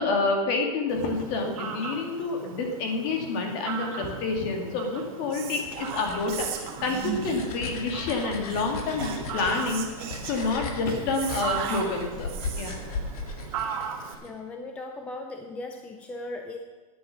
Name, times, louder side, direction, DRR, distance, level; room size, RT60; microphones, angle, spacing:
voice 1, 0.0-9.8 10.3-12.7, left 3 dB, 40° left, 2 dB, 2.3 m, -28 dB
Fowl, 0.9-14.1, right 7 dB, 70° right, 2.5 m, -39 dB
sound 1, 5.3-14.3, left 4 dB, 85° left, 2.0 m, -38 dB
Whispering, 5.3-7.6 8.5-12.9, right 7 dB, 30° right, 1.5 m, -37 dB
voice 2, 14.2-16.6, left 2 dB, 5° left, 4 dB, 0.4 m, -38 dB
11.0 x 9.4 x 6.0 m, 1.3 s
supercardioid pair, 165°, 19 cm